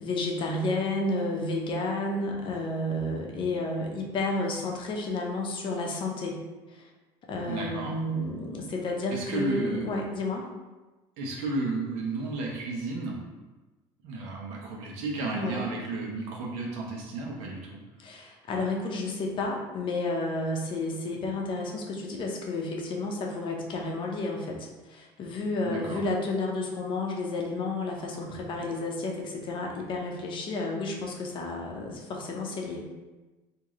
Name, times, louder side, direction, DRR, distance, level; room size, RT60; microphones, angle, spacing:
voice 1, 0.0-6.4 6.7-6.9 7.3-10.5 15.3-15.6 18.0-32.8, left 2 dB, 45° left, 0 dB, 0.7 m, -31 dB
voice 2, 7.5-7.9 9.1-9.9 11.2-13.2 14.0-17.8 25.6-26.1, right 3 dB, 80° right, -1 dB, 0.9 m, -33 dB
3.0 x 2.7 x 3.7 m, 1.2 s
cardioid pair, 115°, 12 cm